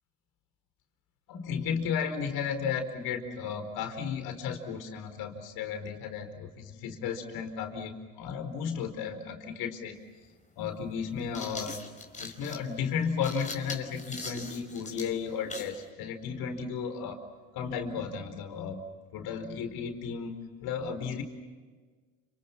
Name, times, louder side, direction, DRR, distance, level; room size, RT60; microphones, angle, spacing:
voice 1, 1.3-10.0 10.6-11.7 12.2-17.2 17.5-18.8 19.1-20.3 20.6-21.2, left 6 dB, 65° left, 6 dB, 4.6 m, -34 dB
sound 1, 10.0-10.1 11.0-15.8, left 3 dB, 20° left, 5.1 m, -41 dB
30.0 x 28.0 x 6.1 m, 1.4 s
hypercardioid pair, 75°, 40 cm